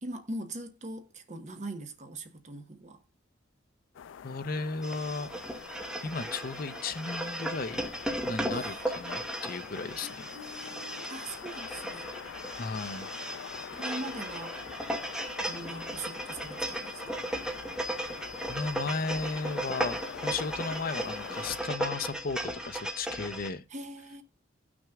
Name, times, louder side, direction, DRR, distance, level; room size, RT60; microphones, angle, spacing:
voice 1, 0.0-3.0 8.5-8.9 10.0-12.1 13.7-14.6 15.4-17.2 23.7-24.2, right 2 dB, 40° right, 1.2 m, -41 dB
sound 1, 3.9-21.6, left 8 dB, 80° left, 0.4 m, -45 dB
voice 2, 4.2-5.3 6.0-7.8 8.2-10.3 12.5-13.1 18.5-23.6, left 4 dB, 50° left, 0.7 m, -35 dB
sound 2, 4.8-23.5, right 1 dB, 5° right, 1.1 m, -36 dB
18.0 x 6.2 x 2.3 m
head